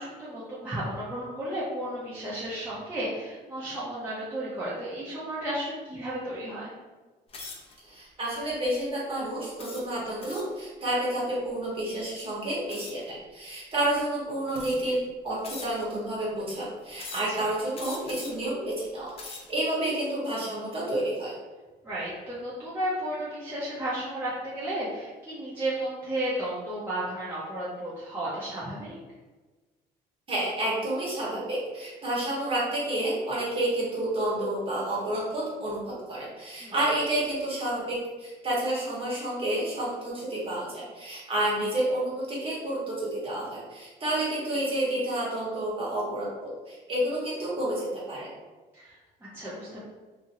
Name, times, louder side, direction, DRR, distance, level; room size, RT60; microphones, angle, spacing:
voice 1, 0.0-6.7 17.4-17.5 21.8-29.0 36.6-36.7 48.7-49.8, right 1 dB, 10° right, -9 dB, 0.7 m, -33 dB
sound 1, 7.3-7.7 8.4-8.6 9.6-10.6 12.7-13.1 13.9-14.0 14.5-15.0 15.4-16.0 17.0-17.4 17.7-18.5 19.0-19.6, left 3 dB, 35° left, 0.6 m, -42 dB
voice 2, 7.8-21.3 30.3-48.3, right 1 dB, 30° right, -6 dB, 1.3 m, -30 dB
2.8 x 2.7 x 2.6 m, 1.3 s
cardioid pair, 110°, 17 cm